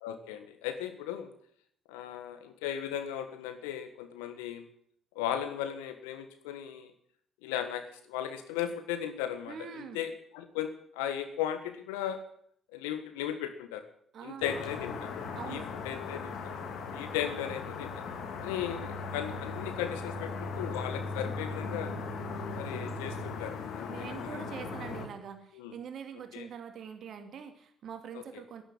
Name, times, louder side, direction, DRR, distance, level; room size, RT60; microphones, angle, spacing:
voice 1, 0.0-1.3 1.9-4.6 5.1-6.9 7.4-7.8 8.1-12.2 12.7-13.8 14.2-15.1 15.5-16.3 16.9-17.9 18.4-21.9 22.5-24.4 25.5-25.7 26.3-26.5 28.1-28.2, left 10 dB, 85° left, 9 dB, 1.5 m, -36 dB
voice 2, 9.5-10.0 14.1-14.4 15.3-15.7 23.9-28.6, right 7 dB, 65° right, 6 dB, 2.5 m, -44 dB
sound 1, 14.4-25.1, left 4 dB, 70° left, 2.2 m, -38 dB
11.0 x 11.0 x 9.6 m, 0.65 s
hypercardioid pair, 50°, 0 cm